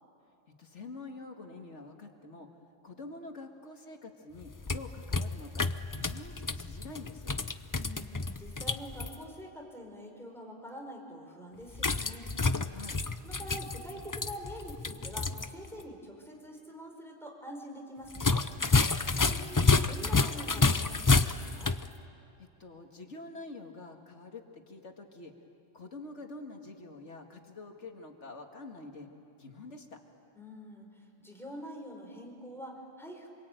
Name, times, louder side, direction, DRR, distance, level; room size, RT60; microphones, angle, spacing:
voice 1, 0.6-2.5 2.8-5.7 5.9-7.3 12.7-13.0 22.4-25.3 25.7-29.1 29.4-30.0, left 3 dB, 65° left, 3 dB, 2.3 m, -46 dB
sound 1, 4.4-9.2 11.7-15.5 15.8-15.9 18.1-21.9, left 3 dB, 25° left, 0.4 m, -29 dB
voice 2, 7.7-12.6 13.2-18.5 19.1-21.8 30.3-33.3, equal, ahead, 0 dB, 4.7 m, -45 dB
26.5 x 23.5 x 9.1 m, 2.5 s
omnidirectional pair, 1.3 m